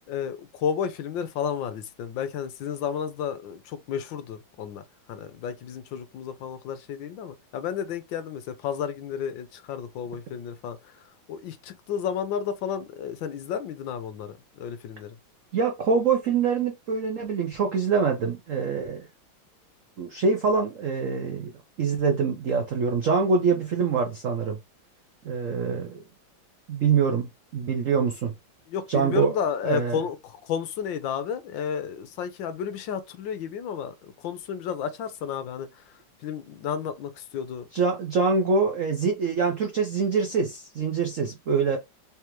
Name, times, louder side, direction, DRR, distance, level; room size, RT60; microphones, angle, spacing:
voice 1, 0.1-4.8 5.1-15.2 28.7-37.7, left 7 dB, 75° left, 1.3 m, -32 dB
voice 2, 15.5-19.1 20.0-21.5 21.8-24.6 25.2-26.0 26.7-28.3 28.9-29.3 29.6-30.0 37.7-41.8, right 5 dB, 75° right, 0.7 m, -25 dB
3.6 x 3.4 x 3.0 m
omnidirectional pair, 2.3 m